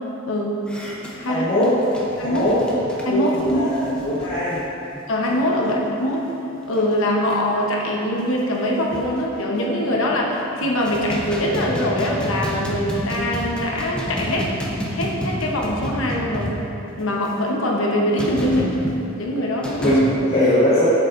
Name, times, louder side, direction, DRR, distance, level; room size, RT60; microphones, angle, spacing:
voice 1, 0.3-0.6 1.1-1.5 2.2-2.4 3.0-3.7 5.1-6.3 6.7-14.5 14.9-16.5 17.0-18.8 19.2-20.0, left 1 dB, 70° left, -2 dB, 1.0 m, -23 dB
sound 1, 0.7-5.7 6.0-6.2 6.5-6.9 7.3-7.4 7.8-7.9 8.2-9.2 9.9-10.3 10.6-17.1 18.2-19.0 19.6-20.1, equal, 5° left, 0.7 m, -31 dB
voice 2, 1.3-1.7 2.2-2.6 3.1-4.6 19.8-20.9, left 1 dB, 35° left, -13 dB, 1.5 m, -20 dB
8.2 x 6.6 x 2.6 m, 3.0 s
head